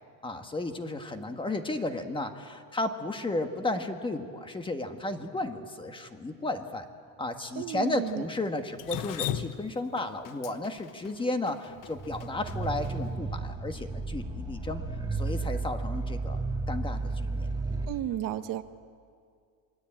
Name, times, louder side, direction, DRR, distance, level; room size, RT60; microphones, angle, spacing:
voice 1, 0.2-6.8 7.2-14.8 15.1-16.4 16.7-17.5, left 2 dB, 15° left, 6 dB, 1.5 m, -33 dB
voice 2, 7.5-8.3 17.9-18.6, right 12 dB, 55° right, 10 dB, 1.1 m, -33 dB
Drip, 8.8-12.9, left 11 dB, 55° left, 1.1 m, -36 dB
sound 1, 11.9-18.0, right 3 dB, 10° right, 1.6 m, -33 dB
27.5 x 21.5 x 8.8 m, 2.2 s
cardioid pair, 145°, 39 cm